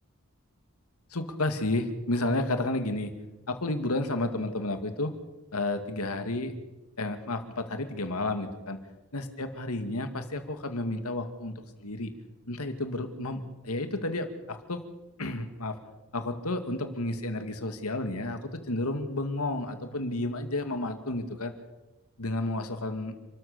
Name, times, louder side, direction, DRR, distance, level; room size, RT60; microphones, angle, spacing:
voice 1, 1.1-3.1 3.5-5.1 5.5-6.5 7.0-8.8 9.1-12.1 12.5-14.8 15.2-15.8 16.1-21.5 22.2-23.2, left 2 dB, 90° left, 8 dB, 2.2 m, -31 dB
29.5 x 13.5 x 6.8 m, 1.1 s
head